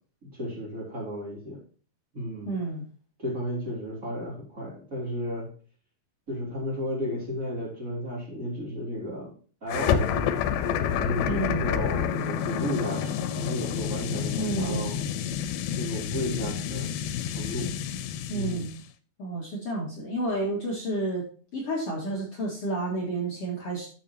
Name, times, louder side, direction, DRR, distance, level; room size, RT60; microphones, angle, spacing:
voice 1, 0.2-1.6 2.1-2.5 3.2-5.5 6.3-9.3 9.6-15.0 15.7-16.9 17.2-17.7 18.3-18.7, equal, 20° right, -4 dB, 3.1 m, -33 dB
voice 2, 2.5-2.8 11.2-11.7 14.3-14.9 18.3-18.7 19.2-21.3 21.5-23.9, right 2 dB, 45° left, -2 dB, 2.4 m, -30 dB
sound 1, 9.7-18.8, left 9 dB, 85° left, 2.7 m, -29 dB
10.5 x 7.6 x 2.8 m, 0.40 s
omnidirectional pair, 4.4 m